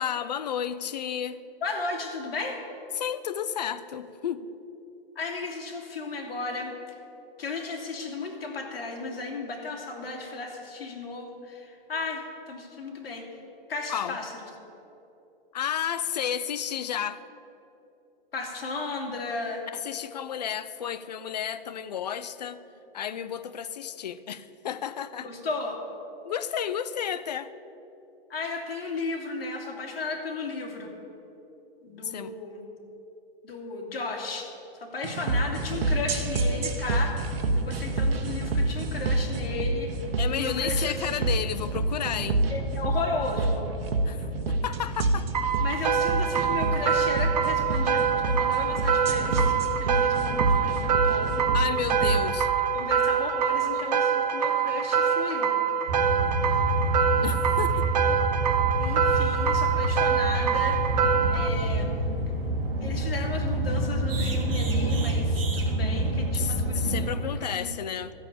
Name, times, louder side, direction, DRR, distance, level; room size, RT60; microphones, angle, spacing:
voice 1, 0.0-1.4 2.9-4.5 13.9-14.2 15.5-17.2 19.7-22.6 22.9-25.3 26.2-27.5 32.0-32.3 40.2-42.5 44.0-45.3 51.5-52.5 57.2-57.9 66.4-68.1, left 9 dB, 45° left, 14 dB, 0.5 m, -32 dB
voice 2, 1.6-2.7 5.2-6.7 7.4-13.3 13.7-14.5 18.3-19.7 25.2-25.8 28.3-30.9 31.8-32.6 33.4-34.5 34.8-37.2 37.5-40.0 40.3-40.9 42.5-43.7 45.6-51.5 52.0-52.1 52.7-55.6 57.7-58.1 58.8-60.8 61.3-62.0 62.8-67.7, left 3 dB, 80° left, 1 dB, 2.7 m, -34 dB
sound 1, 35.0-52.2, right 2 dB, 85° right, 1.7 m, -27 dB
sound 2, 45.3-61.5, right 7 dB, 45° right, 0.7 m, -25 dB
sound 3, 55.9-67.1, right 1 dB, 70° right, 2.6 m, -27 dB
13.5 x 7.0 x 8.7 m, 3.0 s
hypercardioid pair, 180°, 29 cm